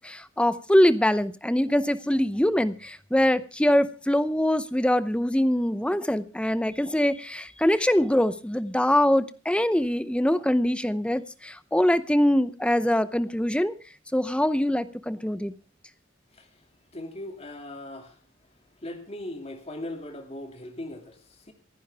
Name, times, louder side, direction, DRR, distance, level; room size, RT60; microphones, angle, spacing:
voice 1, 0.0-13.7 14.1-15.5, left 1 dB, 5° left, 14 dB, 0.7 m, -23 dB
voice 2, 16.9-18.2 18.8-21.5, left 1 dB, 35° left, 5 dB, 2.3 m, -39 dB
26.5 x 10.0 x 3.4 m, 0.35 s
head